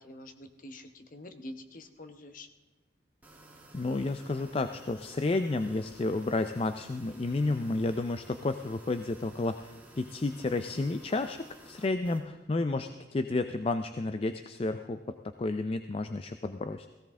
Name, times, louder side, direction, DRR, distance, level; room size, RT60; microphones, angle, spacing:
voice 1, 0.0-2.5, left 1 dB, 45° left, 8 dB, 1.0 m, -46 dB
sound 1, 3.2-12.2, right 1 dB, 10° right, 1.6 m, -54 dB
voice 2, 3.7-16.9, left 2 dB, 30° left, 9 dB, 0.4 m, -31 dB
17.0 x 15.5 x 3.7 m, 1.2 s
head